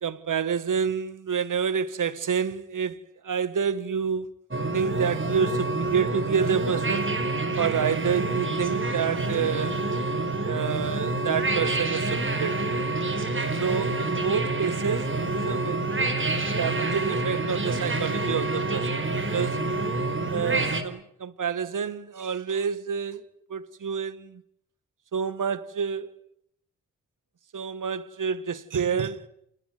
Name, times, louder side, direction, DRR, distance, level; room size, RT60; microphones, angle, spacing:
voice 1, 0.0-4.3 4.7-7.2 7.6-9.8 10.4-12.9 13.6-16.1 16.6-19.1 19.3-19.6 20.3-23.2 23.5-24.4 25.1-26.1 27.5-29.3, right 6 dB, 60° right, 1.8 m, -28 dB
sound 1, 4.5-20.8, right 2 dB, 35° right, 4.6 m, -27 dB
27.5 x 20.5 x 9.5 m
supercardioid pair, 45°, 35 cm